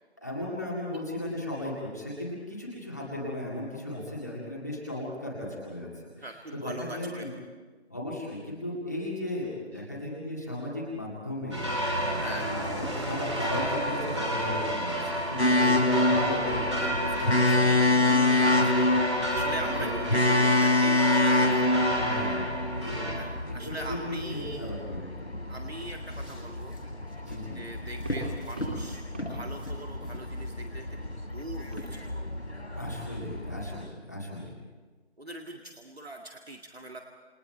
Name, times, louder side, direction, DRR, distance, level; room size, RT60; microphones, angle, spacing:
voice 1, 0.2-7.3 7.9-18.3 19.7-20.0 21.9-23.6 23.9-25.4 27.2-27.7 32.7-34.5, left 1 dB, 15° left, -5 dB, 2.1 m, -36 dB
voice 2, 6.2-7.2 12.2-12.5 15.6-15.8 18.4-18.7 19.3-21.7 23.2-24.7 25.5-26.8 27.5-29.0 29.3-32.0 35.2-37.0, right 1 dB, 65° right, 2 dB, 2.2 m, -41 dB
sound 1, 11.5-23.1, right 1 dB, 25° right, 3.0 m, -31 dB
sound 2, 15.4-33.8, left 2 dB, 75° left, 4.9 m, -26 dB
sound 3, 26.0-30.8 31.6-32.2 32.8-32.9, equal, 10° right, 2.9 m, -38 dB
29.0 x 28.5 x 4.6 m, 1.4 s
figure-of-eight pair, 175°, 34 cm